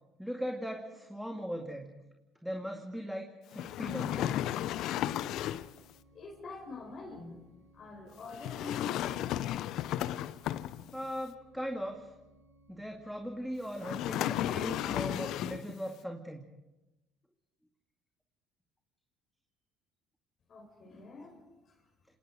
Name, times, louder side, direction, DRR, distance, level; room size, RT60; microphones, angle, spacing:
voice 1, 0.2-1.9 2.4-4.5 10.9-12.1 12.7-16.4, equal, ahead, 3 dB, 2.1 m, -39 dB
sound 1, 3.5-5.8 8.3-11.1 13.8-15.8, left 12 dB, 65° left, 0.7 m, -34 dB
sound 2, 4.3-14.5, equal, 85° left, 4.8 m, -63 dB
voice 2, 6.1-7.4 7.7-9.4 20.5-21.8, left 3 dB, 45° left, 2 dB, 5.1 m, -46 dB
29.5 x 19.0 x 5.0 m, 1.0 s
hypercardioid pair, 65°, 0 cm